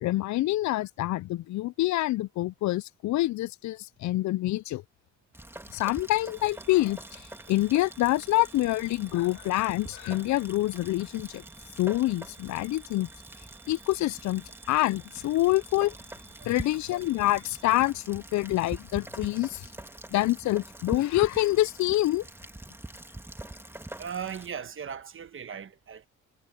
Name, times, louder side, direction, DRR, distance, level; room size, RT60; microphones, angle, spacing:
voice 1, 0.0-4.8 5.7-11.4 11.8-13.1 13.7-15.9 16.5-19.7 20.1-22.2, left 16 dB, 70° left, 0.5 m, -26 dB
Rain, 5.3-24.5, right 1 dB, 10° right, 2.6 m, -44 dB
sound 1, 6.3-17.8, right 16 dB, 90° right, 5.2 m, -58 dB
voice 2, 24.0-26.1, right 7 dB, 45° right, 1.3 m, -38 dB
cardioid pair, 90°, 30 cm